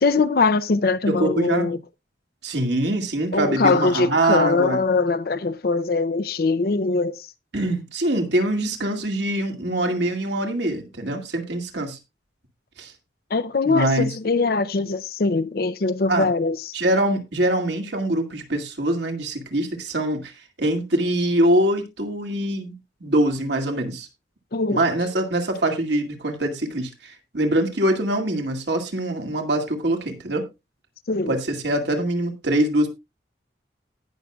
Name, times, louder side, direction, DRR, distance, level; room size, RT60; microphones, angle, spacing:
voice 1, 0.0-1.8 3.3-7.3 13.3-16.7 24.5-24.8 31.1-31.3, left 3 dB, 55° left, 0.5 m, -22 dB
voice 2, 1.1-1.7 2.4-4.8 7.5-12.0 12.8-12.9 13.6-14.1 16.1-16.3 16.7-20.3 20.6-22.7 23.0-24.1 24.7-30.4 31.3-32.9, right 1 dB, 70° right, 2.2 m, -23 dB
18.5 x 6.4 x 2.3 m
head